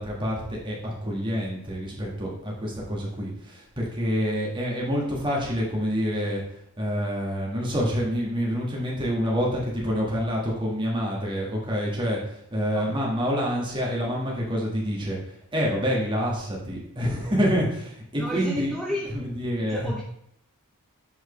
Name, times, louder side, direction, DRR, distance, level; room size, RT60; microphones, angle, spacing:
voice 1, 0.0-6.4 6.8-20.0, equal, 20° right, -3 dB, 1.7 m, -27 dB
voice 2, 18.2-19.1 19.7-20.0, equal, ahead, -3 dB, 0.6 m, -32 dB
7.3 x 4.6 x 3.2 m, 0.74 s
head